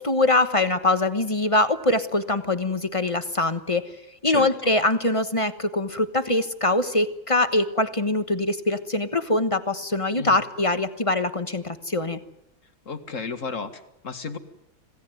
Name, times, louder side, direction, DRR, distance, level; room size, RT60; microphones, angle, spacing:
voice 1, 0.0-3.8 4.2-12.2, left 2 dB, 20° left, 10 dB, 1.0 m, -23 dB
voice 2, 4.2-4.7 10.2-10.4 12.9-14.4, left 4 dB, 45° left, 9 dB, 2.1 m, -34 dB
26.5 x 17.5 x 9.3 m, 0.85 s
omnidirectional pair, 2.0 m